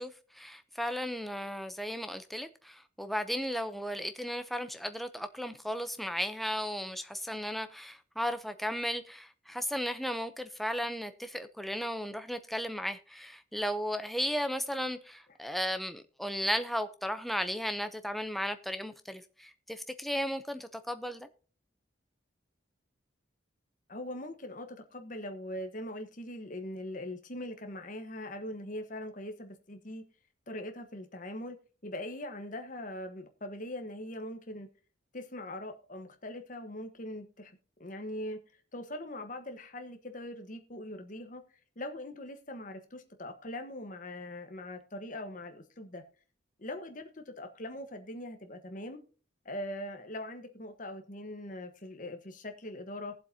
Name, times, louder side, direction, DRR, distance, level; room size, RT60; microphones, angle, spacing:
voice 1, 0.0-21.3, equal, ahead, 0.6 m, -35 dB
voice 2, 23.9-30.0 30.5-31.6 31.8-34.7 35.1-37.5 37.8-38.4 38.7-41.4 41.8-46.0 46.6-49.0 49.4-53.1, left 1 dB, 45° left, 1.3 m, -41 dB
20.0 x 7.5 x 2.8 m
head